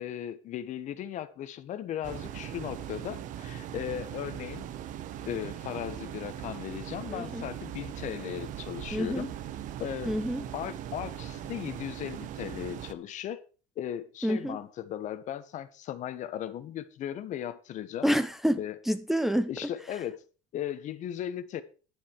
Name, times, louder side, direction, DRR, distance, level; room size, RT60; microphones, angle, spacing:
voice 1, 0.0-4.7 5.3-9.4 9.8-10.1 10.5-13.4 13.8-18.1 18.6-18.8 19.5-20.2 20.5-21.6, left 10 dB, 50° left, 1.5 m, -37 dB
sound 1, 2.0-12.9, right 11 dB, 55° right, 1.2 m, -40 dB
voice 2, 7.1-7.4 8.9-9.3 10.1-10.4 14.2-14.6 18.0-18.6 18.9-19.5, equal, ahead, 0.8 m, -27 dB
11.0 x 7.7 x 6.4 m
supercardioid pair, 105°, 16 cm